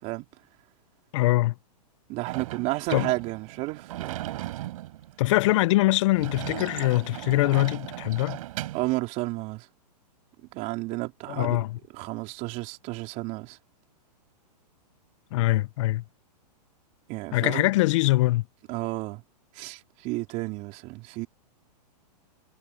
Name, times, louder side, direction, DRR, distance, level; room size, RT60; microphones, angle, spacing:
voice 1, 1.1-1.6 2.9-3.1 5.2-8.4 11.3-11.8 15.3-16.0 17.3-18.5, left 18 dB, 50° left, 0.7 m, -23 dB
voice 2, 2.1-4.2 8.7-9.7 10.5-11.6 11.9-13.6 17.1-17.7 18.7-19.2 19.5-21.3, right 22 dB, 35° right, 3.7 m, -32 dB
Sliding door / Slam, 2.3-8.9, right 15 dB, 55° right, 5.7 m, -37 dB
hypercardioid pair, 140°, 21 cm